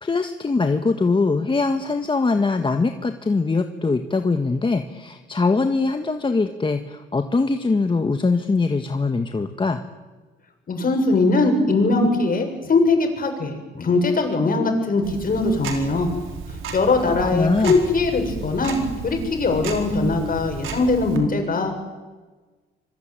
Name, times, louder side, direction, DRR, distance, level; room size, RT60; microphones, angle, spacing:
voice 1, 0.0-9.8 17.0-17.8, left 3 dB, 25° left, 6 dB, 1.7 m, -22 dB
voice 2, 10.7-16.1 16.7-18.8 19.0-21.7, left 3 dB, 45° left, 5 dB, 7.4 m, -21 dB
Tick-tock, 15.0-21.2, right 5 dB, 85° right, 4.6 m, -34 dB
26.0 x 22.5 x 9.1 m, 1.3 s
cardioid pair, 90°, 20 cm